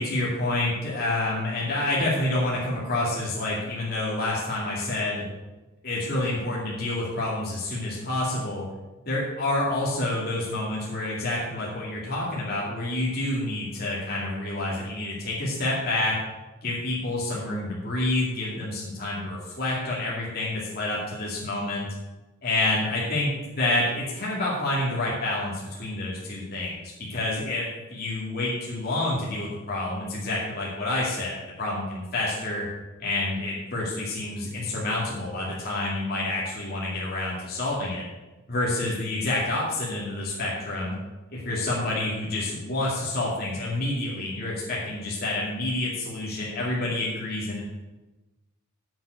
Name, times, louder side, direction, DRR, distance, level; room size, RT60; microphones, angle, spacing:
voice 1, 0.0-5.3 5.8-8.7 9.1-16.2 16.6-21.9 22.4-32.7 33.0-38.0 38.5-41.0 41.3-47.6, left 2 dB, 45° left, -5 dB, 2.5 m, -28 dB
7.6 x 7.5 x 7.8 m, 1.1 s
head